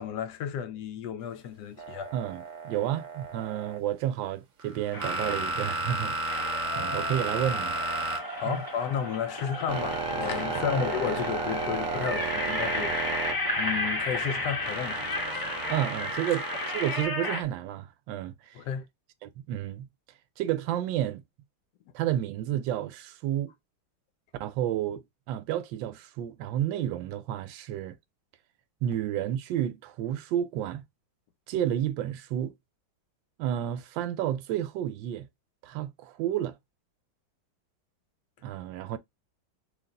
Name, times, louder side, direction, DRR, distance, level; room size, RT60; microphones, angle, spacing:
voice 1, 0.0-2.1 8.3-13.0 13.6-15.5 16.3-16.4 18.5-18.9, left 8 dB, 70° left, 1.0 m, -33 dB
sound 1, 1.8-3.8 4.6-8.9 9.2-13.8 14.6-17.0, right 3 dB, 55° right, 0.9 m, -34 dB
voice 2, 2.1-6.5 6.8-7.8 8.4-8.6 10.5-10.8 15.7-18.6 19.2-19.9 20.4-21.2 21.9-23.5 24.4-28.0 28.8-30.8 31.5-32.5 33.4-35.3 35.6-36.5 38.4-39.0, right 11 dB, 75° right, 1.2 m, -31 dB
sound 2, 4.9-5.8 6.3-17.4, left 1 dB, 35° left, 0.3 m, -33 dB
sound 3, 9.7-16.1, right 3 dB, 30° right, 0.6 m, -49 dB
3.4 x 2.5 x 3.7 m
omnidirectional pair, 2.2 m